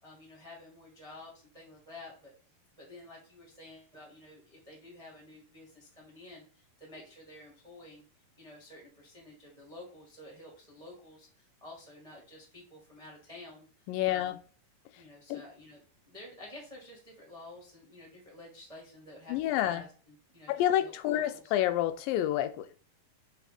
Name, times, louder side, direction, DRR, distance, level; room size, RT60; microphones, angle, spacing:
voice 1, 0.0-2.3 2.7-8.0 8.4-13.7 14.1-14.4 15.0-21.5, left 1 dB, 20° right, 0.9 m, -51 dB
voice 2, 13.9-14.4 15.3-15.4 19.3-19.8 20.5-22.8, left 12 dB, 85° left, 2.2 m, -29 dB
4.6 x 4.3 x 5.8 m
omnidirectional pair, 4.1 m